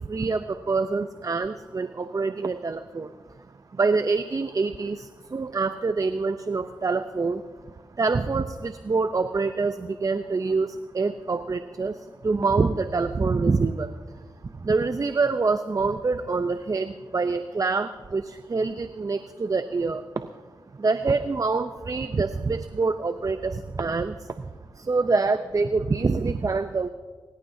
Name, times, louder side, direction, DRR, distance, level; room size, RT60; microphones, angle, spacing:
voice 1, 0.1-3.1 3.8-7.4 8.0-10.7 10.9-11.9 12.2-13.9 14.6-20.0 20.8-24.1 24.8-26.9, right 4 dB, 45° right, 10 dB, 0.6 m, -25 dB
24.5 x 15.0 x 2.7 m, 1.5 s
cardioid pair, 45°, 8 cm